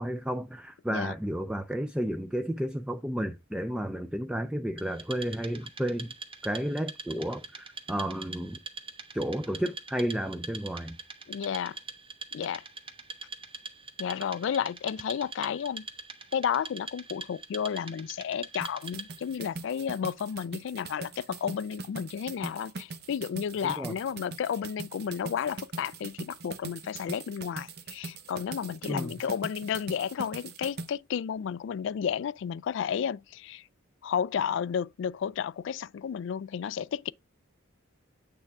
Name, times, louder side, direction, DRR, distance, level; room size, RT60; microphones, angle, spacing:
voice 1, 0.0-6.1 6.4-8.6 9.1-11.0 23.6-23.9 28.9-29.1, equal, 5° right, 0.4 m, -32 dB
Wood, 4.8-19.3, right 4 dB, 25° right, 1.0 m, -43 dB
voice 2, 11.3-11.8 12.3-12.6 14.0-15.9 16.3-33.6 34.0-37.1, left 8 dB, 65° left, 0.3 m, -32 dB
sound 1, 18.6-30.9, right 3 dB, 55° right, 0.9 m, -41 dB
8.9 x 3.5 x 4.7 m
head